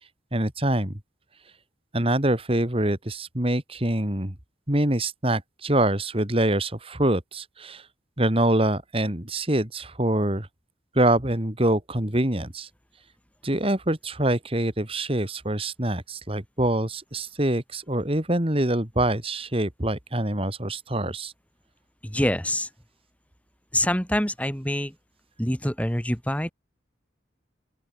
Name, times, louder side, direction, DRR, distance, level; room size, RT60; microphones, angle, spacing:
voice 1, 0.3-0.9 1.9-4.3 4.7-7.9 8.2-10.5 10.9-12.7 13.4-21.3, right 1 dB, 30° right, 2.6 m, -25 dB
voice 2, 22.0-22.7 23.7-25.0 25.4-26.5, left 1 dB, 10° left, 3.7 m, -25 dB
open air
head